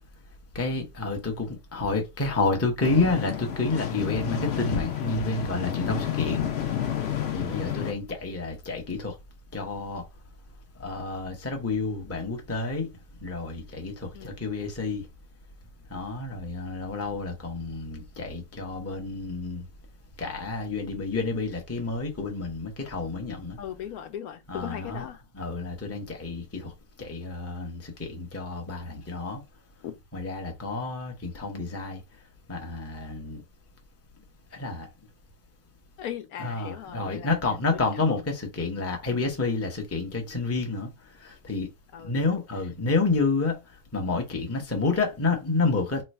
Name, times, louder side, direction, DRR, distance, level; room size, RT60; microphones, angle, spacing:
voice 1, 0.5-6.5 7.3-9.2 9.5-10.0 10.8-12.9 13.2-15.1 15.9-19.6 20.2-23.6 24.5-25.0 25.4-26.7 27.0-29.4 30.1-32.0 32.5-33.4 34.5-34.9 36.4-41.7 42.0-46.0, left 3 dB, 15° left, 0.6 m, -29 dB
sound 1, 2.8-7.9, left 10 dB, 60° left, 0.7 m, -30 dB
voice 2, 23.6-25.2 29.8-29.9 36.0-37.4 37.7-38.3 41.9-42.4, left 10 dB, 80° left, 1.1 m, -39 dB
3.1 x 2.3 x 4.1 m
omnidirectional pair, 1.6 m